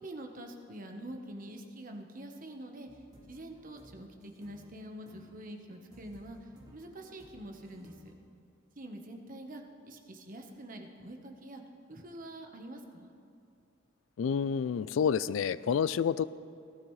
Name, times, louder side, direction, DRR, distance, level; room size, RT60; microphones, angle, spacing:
voice 1, 0.0-2.9 3.3-8.1 8.8-11.6 11.9-13.1, right 1 dB, 45° right, 4 dB, 1.1 m, -46 dB
sound 1, 2.9-8.1, equal, 20° right, 1.9 m, -58 dB
voice 2, 14.2-16.3, left 7 dB, 80° left, 17 dB, 0.3 m, -29 dB
18.5 x 12.5 x 3.2 m, 2.5 s
head